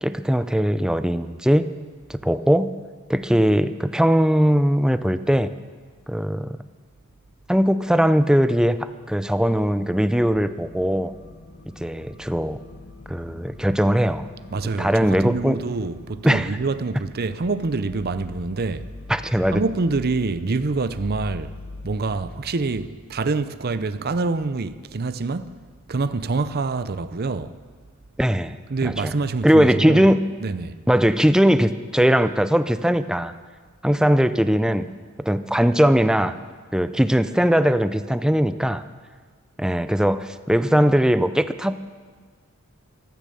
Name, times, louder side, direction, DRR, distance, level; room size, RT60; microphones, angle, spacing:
voice 1, 0.0-1.7 2.1-2.7 3.1-5.5 6.1-6.6 7.5-8.8 9.1-11.1 11.8-12.6 13.1-14.3 14.8-15.6 16.2-16.5 19.1-19.6 28.2-29.1 29.4-30.2 30.9-33.3 33.8-34.9 35.3-36.4 36.7-38.8 39.6-41.7, equal, 5° right, 0.5 m, -20 dB
sound 1, 8.9-22.8, left 2 dB, 65° left, 1.6 m, -43 dB
voice 2, 14.5-18.8 19.5-21.5 21.8-25.5 25.9-27.5 28.7-30.1 30.4-30.8, right 3 dB, 45° right, 0.6 m, -26 dB
15.0 x 13.5 x 6.9 m
head